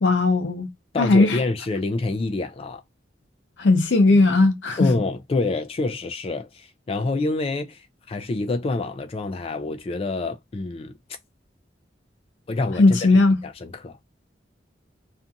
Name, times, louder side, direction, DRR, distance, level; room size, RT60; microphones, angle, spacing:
voice 1, 0.0-0.7 1.0-1.4 3.6-4.9 12.8-13.4, left 2 dB, 90° left, 0.6 m, -17 dB
voice 2, 0.9-2.8 4.8-10.9 12.5-13.0 13.4-14.0, left 3 dB, 35° left, 0.3 m, -27 dB
2.5 x 2.3 x 2.6 m
head